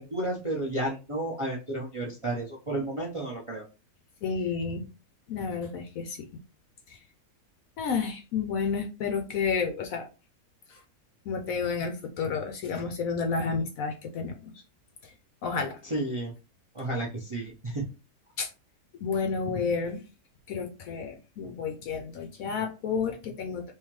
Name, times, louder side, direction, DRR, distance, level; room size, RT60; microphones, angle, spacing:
voice 1, 0.0-3.6 15.9-16.3 16.7-17.8, right 1 dB, 35° right, -4 dB, 0.5 m, -32 dB
voice 2, 4.2-4.8 5.3-6.3 7.8-10.1 11.3-14.3 15.4-15.8 18.4-18.5 19.0-20.0 20.5-23.6, left 5 dB, 70° left, 5 dB, 0.9 m, -30 dB
3.6 x 2.8 x 3.0 m, 0.31 s
omnidirectional pair, 1.8 m